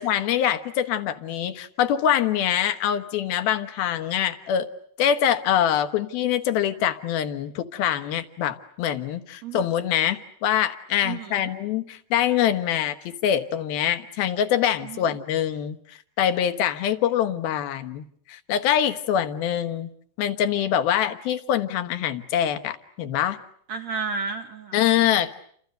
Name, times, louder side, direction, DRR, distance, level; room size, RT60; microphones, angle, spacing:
voice 1, 0.0-4.7 5.0-19.9 20.2-23.4 24.7-25.3, left 10 dB, 70° left, 10 dB, 3.0 m, -24 dB
voice 2, 11.0-11.5 14.8-15.2 23.7-25.0, right 4 dB, 60° right, 5 dB, 1.8 m, -33 dB
30.0 x 26.0 x 6.7 m, 0.64 s
omnidirectional pair, 4.8 m